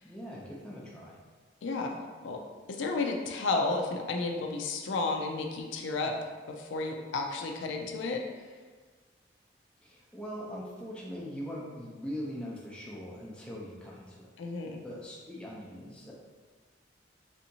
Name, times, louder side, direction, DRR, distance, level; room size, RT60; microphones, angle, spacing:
voice 1, 0.0-1.2 9.8-14.3 14.8-16.1, equal, 5° left, -5 dB, 0.5 m, -41 dB
voice 2, 1.6-2.4 2.7-6.1 6.6-8.2 14.4-14.8, left 3 dB, 85° left, 2 dB, 0.4 m, -32 dB
3.4 x 2.8 x 2.7 m, 1.4 s
head